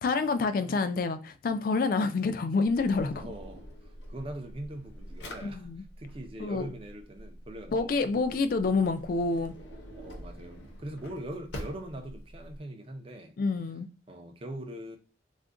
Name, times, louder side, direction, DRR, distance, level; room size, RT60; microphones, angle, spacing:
voice 1, 0.0-3.2 5.4-5.8 6.4-6.7 7.7-9.5 13.4-13.9, left 4 dB, 50° left, 0.3 m, -28 dB
Drawer open or close, 2.7-12.6, equal, 65° left, 0.7 m, -46 dB
voice 2, 3.1-5.7 6.0-8.3 10.0-13.4 14.1-15.0, right 1 dB, 30° right, 0.4 m, -42 dB
2.5 x 2.1 x 3.6 m
head